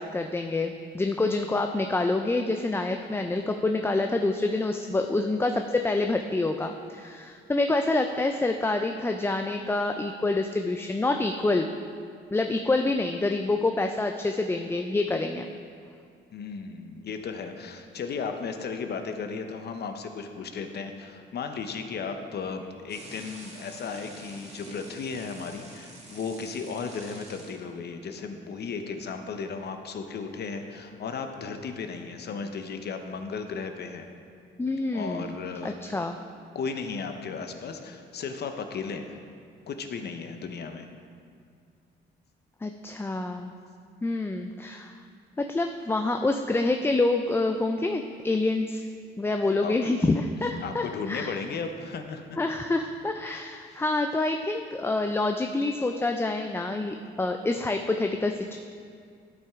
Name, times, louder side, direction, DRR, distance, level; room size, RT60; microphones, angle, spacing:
voice 1, 0.0-11.7 12.3-15.5 34.6-35.4 35.6-36.2 42.6-43.5 44.0-44.9 45.4-48.8 49.2-51.4 52.4-58.6, left 2 dB, 10° left, 5 dB, 0.4 m, -27 dB
voice 2, 16.3-34.1 34.9-35.7 36.5-39.2 39.7-40.9 49.6-49.8 50.6-52.4 53.7-53.8, left 5 dB, 55° left, 6 dB, 0.8 m, -35 dB
sound 1, 22.9-27.5, right 1 dB, 35° right, 1.7 m, -47 dB
12.0 x 5.7 x 3.6 m, 2.2 s
cardioid pair, 90°, 20 cm